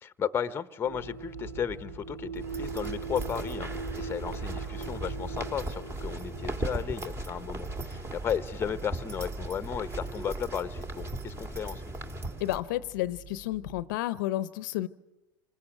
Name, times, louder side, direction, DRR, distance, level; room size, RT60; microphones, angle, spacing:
voice 1, 0.0-11.8, left 8 dB, 20° left, 1.0 m, -34 dB
sound 1, 0.8-13.8, right 4 dB, 65° right, 3.6 m, -42 dB
sound 2, 2.4-12.6, right 1 dB, 20° right, 2.2 m, -38 dB
voice 2, 12.4-14.9, left 15 dB, 65° left, 0.8 m, -31 dB
27.0 x 20.0 x 7.7 m
hypercardioid pair, 110°, 11 cm